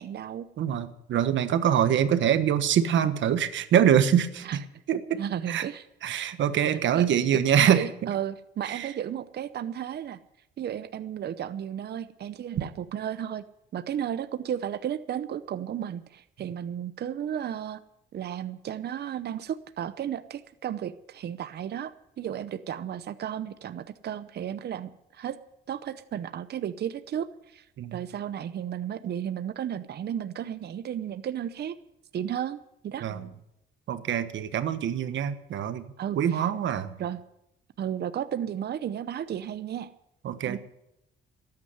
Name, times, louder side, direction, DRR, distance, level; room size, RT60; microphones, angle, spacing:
voice 1, 0.0-0.5 4.4-4.6 5.2-5.9 6.9-7.1 7.3-7.4 7.7-10.2 10.6-13.4 13.7-17.8 18.1-25.4 25.7-27.6 27.9-31.7 32.1-32.6 32.8-33.1 36.0-36.5 37.0-37.2 37.8-39.9 40.5-40.6, right 9 dB, 55° right, 12 dB, 0.7 m, -33 dB
voice 2, 0.6-4.6 4.9-5.2 5.5-5.6 6.0-8.1 8.6-8.9 27.8-28.0 33.0-33.3 33.9-35.8 36.2-37.0 40.2-40.6, right 9 dB, 70° right, 11 dB, 1.3 m, -24 dB
13.5 x 9.6 x 9.4 m, 0.83 s
cardioid pair, 90°, 20 cm